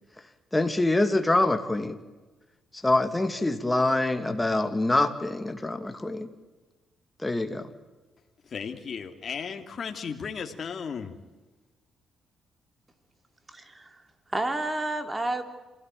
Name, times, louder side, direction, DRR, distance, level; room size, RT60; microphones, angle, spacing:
voice 1, 0.5-2.0 2.8-6.3 7.2-7.7, left 2 dB, 15° left, 8 dB, 2.7 m, -25 dB
voice 2, 8.5-11.1, left 6 dB, 50° left, 5 dB, 2.8 m, -35 dB
voice 3, 13.5-14.0 14.3-15.4, right 2 dB, 20° right, 8 dB, 3.4 m, -30 dB
27.0 x 17.5 x 9.2 m, 1.2 s
cardioid pair, 90°, 0 cm